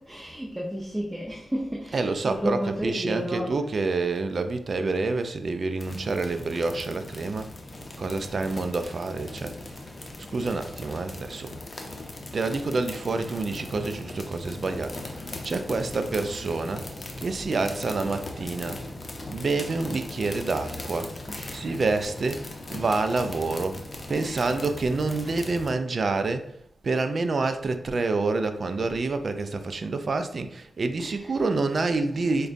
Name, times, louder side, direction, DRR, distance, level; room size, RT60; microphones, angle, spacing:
voice 1, 0.0-3.6 21.3-21.8 24.2-24.6 25.2-25.4 31.0-31.3 32.1-32.5, equal, 15° right, 0.7 m, -33 dB
voice 2, 1.9-7.5 8.0-9.6 10.3-11.6 12.3-16.9 17.2-18.8 19.3-21.1 21.5-22.4 22.7-23.8 24.1-26.5 26.8-32.5, right 3 dB, 55° right, 0.3 m, -27 dB
sound 1, 5.8-25.7, left 2 dB, 45° left, 0.6 m, -39 dB
4.8 x 2.2 x 2.6 m
cardioid pair, 50°, 0 cm